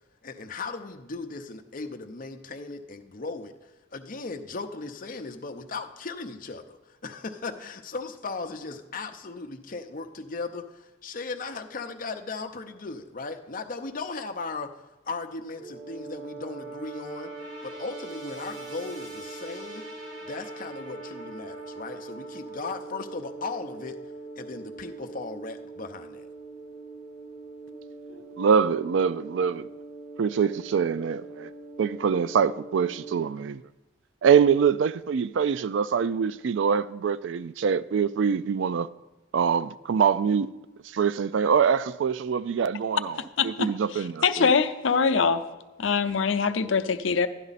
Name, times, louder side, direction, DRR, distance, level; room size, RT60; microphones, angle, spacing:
voice 1, 0.2-3.5 3.9-14.8 15.1-17.3 17.6-19.9 20.2-24.0 24.4-26.3, left 3 dB, 45° left, 0.7 m, -37 dB
sound 1, 15.5-33.2, right 3 dB, 90° right, 4.4 m, -41 dB
voice 2, 28.4-29.7 30.2-31.5 31.8-33.6 34.2-38.9 39.3-40.5 40.8-43.2 43.4-44.5, right 6 dB, 70° right, 0.4 m, -24 dB
voice 3, 43.4-45.4 45.8-47.3, left 5 dB, 85° left, 0.6 m, -24 dB
12.0 x 10.5 x 4.1 m
head